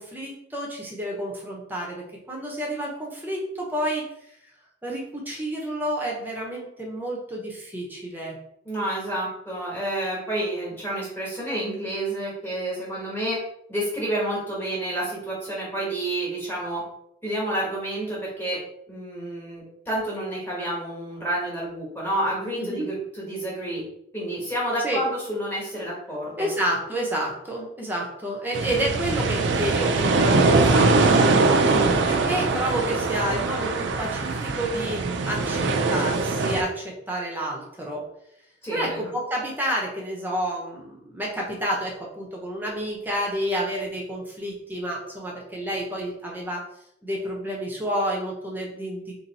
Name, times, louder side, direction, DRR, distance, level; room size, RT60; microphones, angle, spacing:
voice 1, 0.0-4.0 4.8-8.4 22.6-22.9 24.8-25.0 26.4-31.3 32.1-38.0 38.7-46.6 47.0-49.2, right 1 dB, 10° right, -2 dB, 0.8 m, -30 dB
voice 2, 8.6-13.4 13.7-16.8 17.2-18.6 18.9-23.8 24.1-26.5 31.6-31.9 38.6-39.0, right 1 dB, 10° left, -5 dB, 1.3 m, -29 dB
sound 1, 28.5-36.6, right 3 dB, 65° right, 0.4 m, -22 dB
2.9 x 2.9 x 4.1 m, 0.76 s
head